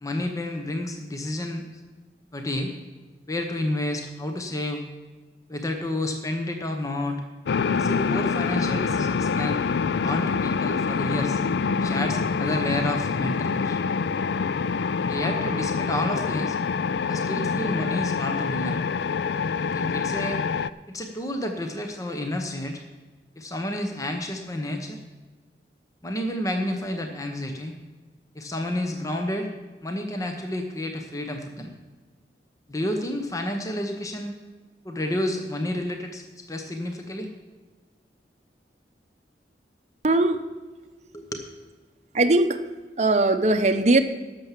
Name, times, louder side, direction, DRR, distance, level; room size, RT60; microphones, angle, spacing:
voice 1, 0.0-1.8 2.3-2.7 3.3-4.8 5.5-7.2 7.7-9.6 10.0-11.4 11.8-13.8 15.1-16.6 17.1-18.8 19.6-20.4 20.9-22.8 23.4-25.0 26.0-27.8 28.3-29.5 29.8-31.7 32.7-34.4 34.8-37.3 41.1-41.5, left 1 dB, 20° left, 4 dB, 0.9 m, -30 dB
sound 1, 7.5-20.7, left 5 dB, 70° left, 0.4 m, -26 dB
voice 2, 40.0-40.4 42.1-42.6 43.0-44.0, right 2 dB, 40° right, 7 dB, 0.7 m, -19 dB
11.5 x 6.9 x 7.4 m, 1.3 s
head